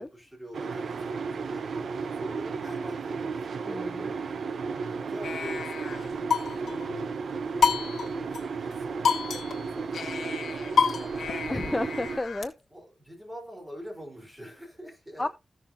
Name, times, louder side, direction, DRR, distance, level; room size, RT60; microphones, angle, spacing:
voice 1, 0.0-4.1 5.1-8.3 8.6-11.7 12.7-15.3, equal, 10° right, 4.0 m, -44 dB
sound 1, 0.5-12.2, right 5 dB, 75° right, 0.6 m, -34 dB
voice 2, 3.7-4.1 11.5-12.5 15.2-15.3, left 2 dB, 15° left, 0.4 m, -31 dB
sound 2, 5.2-6.9 7.6-8.4 8.7-8.8 9.0-12.5, left 6 dB, 85° left, 1.4 m, -29 dB
15.0 x 6.2 x 2.7 m
wide cardioid pair, 145°, 0 cm